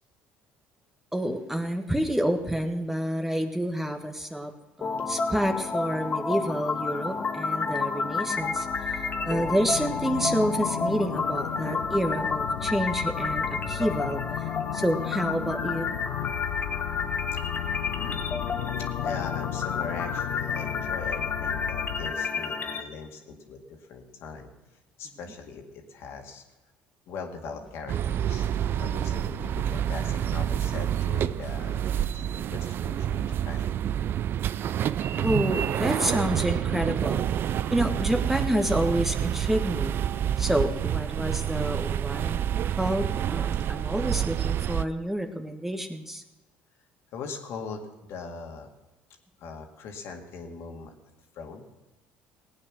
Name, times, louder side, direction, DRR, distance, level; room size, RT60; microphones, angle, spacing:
voice 1, 1.1-4.5 4.8-15.9 35.2-37.2 37.7-40.0 40.4-46.2, equal, 5° right, 5 dB, 1.4 m, -29 dB
sound 1, 4.8-22.8, left 4 dB, 40° left, 1.3 m, -30 dB
sound 2, 8.4-22.1, left 14 dB, 85° left, 0.5 m, -35 dB
voice 2, 17.6-18.3 19.0-24.5 25.0-26.4 27.1-33.7 47.1-48.7 49.4-50.9 51.3-51.7, left 4 dB, 65° left, 3 dB, 2.0 m, -40 dB
sound 3, 27.9-44.8, right 10 dB, 55° right, 0.4 m, -28 dB
17.0 x 8.9 x 6.1 m, 1.1 s
hypercardioid pair, 70°, 5 cm